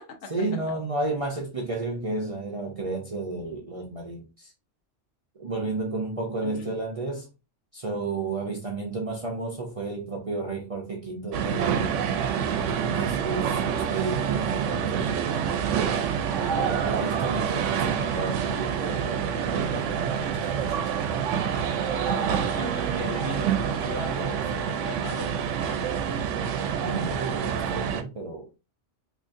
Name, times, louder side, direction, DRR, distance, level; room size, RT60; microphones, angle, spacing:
voice 1, 0.3-4.5 5.4-7.3 7.7-12.1 12.7-15.1 16.5-21.1 26.8-28.5, right 3 dB, 40° right, 0.5 m, -32 dB
voice 2, 6.4-6.8 12.9-13.3 22.5-26.0, left 2 dB, 80° left, 1.2 m, -38 dB
sound 1, 11.3-28.0, right 7 dB, 80° right, 0.9 m, -27 dB
3.8 x 3.0 x 2.5 m
omnidirectional pair, 1.2 m